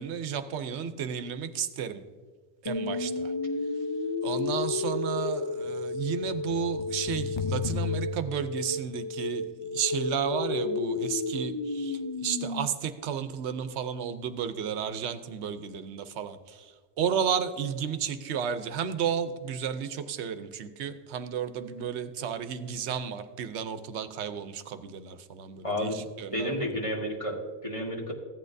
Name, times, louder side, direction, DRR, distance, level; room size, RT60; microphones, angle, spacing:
voice 1, 0.0-2.0 2.6-3.3 4.2-26.7, right 7 dB, 80° right, 10 dB, 0.9 m, -33 dB
sound 1, 2.7-12.7, left 3 dB, 50° left, 0.3 m, -32 dB
voice 2, 25.6-26.0 26.3-28.1, equal, 30° left, -1 dB, 1.5 m, -31 dB
14.5 x 8.6 x 2.6 m, 1.5 s
omnidirectional pair, 1.1 m